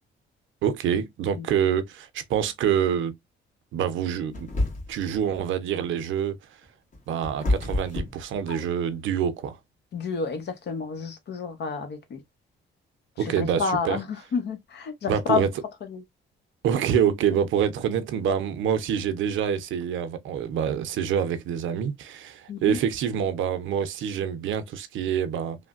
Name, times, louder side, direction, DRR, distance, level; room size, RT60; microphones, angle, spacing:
voice 1, 0.6-3.2 3.7-4.5 4.9-6.4 7.1-9.6 13.2-14.0 15.1-15.5 16.6-25.6, right 8 dB, 75° right, 0.6 m, -26 dB
sound 1, 4.3-5.1 6.6-8.9, left 1 dB, 40° left, 1.5 m, -28 dB
voice 2, 9.9-12.2 13.3-14.1 14.3-15.5 15.9-16.0 22.5-22.8, left 5 dB, 60° left, 0.9 m, -29 dB
3.2 x 2.1 x 2.4 m
cardioid pair, 90°, 20 cm